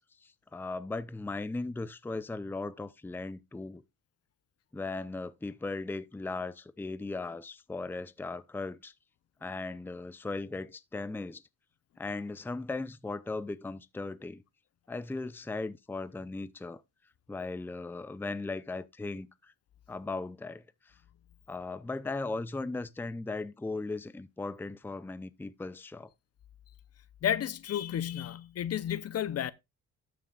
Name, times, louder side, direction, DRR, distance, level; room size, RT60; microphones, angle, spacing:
voice 1, 0.0-3.8 4.7-8.9 9.4-11.4 12.0-14.4 14.9-16.8 17.3-19.5 19.9-21.0 21.5-26.1, left 3 dB, 5° left, 0.5 m, -37 dB
voice 2, 27.2-29.5, left 10 dB, 55° left, 0.7 m, -32 dB
13.0 x 6.1 x 2.3 m
cardioid pair, 90°, 30 cm